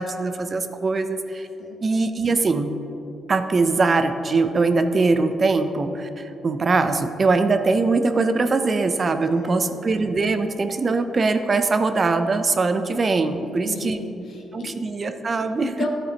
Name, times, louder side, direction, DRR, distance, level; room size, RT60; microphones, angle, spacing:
voice 1, 0.0-1.5 1.8-2.7 3.3-14.0 14.5-15.7, right 3 dB, 35° right, 9 dB, 0.5 m, -22 dB
voice 2, 9.3-9.8 13.4-14.7 15.6-15.9, left 3 dB, 65° left, 2 dB, 1.3 m, -34 dB
12.0 x 7.6 x 2.9 m, 3.0 s
cardioid pair, 110°, 0 cm